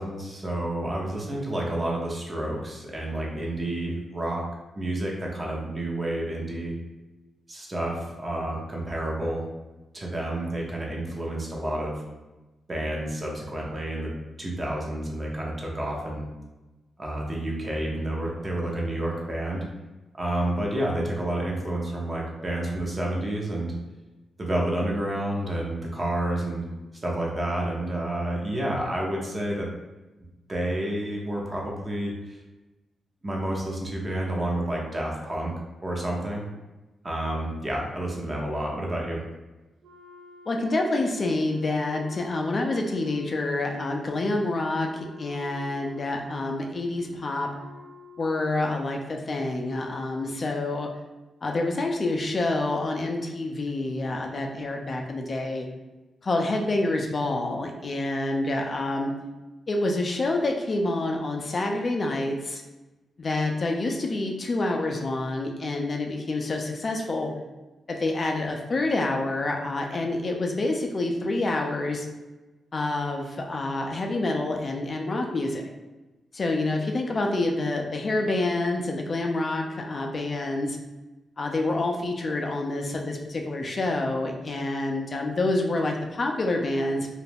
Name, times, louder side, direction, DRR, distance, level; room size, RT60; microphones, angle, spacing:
voice 1, 0.0-4.4 4.8-6.7 7.5-9.4 9.9-11.9 12.7-14.1 14.4-16.3 17.0-19.6 20.1-23.7 24.4-26.6 27.0-29.7 30.5-32.4 33.2-35.5 35.8-36.4 37.0-39.2, right 1 dB, 35° right, -2 dB, 0.7 m, -29 dB
Wind instrument woodwind instrument, 39.8-48.6, left 3 dB, 85° right, 0.5 m, -51 dB
voice 2, 40.5-47.5 48.2-50.9 51.4-55.7 56.2-59.1 59.7-62.6 63.2-67.3 67.9-72.1 72.7-75.7 76.3-80.8 81.4-87.1, left 2 dB, 50° left, 2 dB, 0.4 m, -27 dB
2.3 x 2.1 x 3.3 m, 1.1 s
cardioid pair, 60°, 0 cm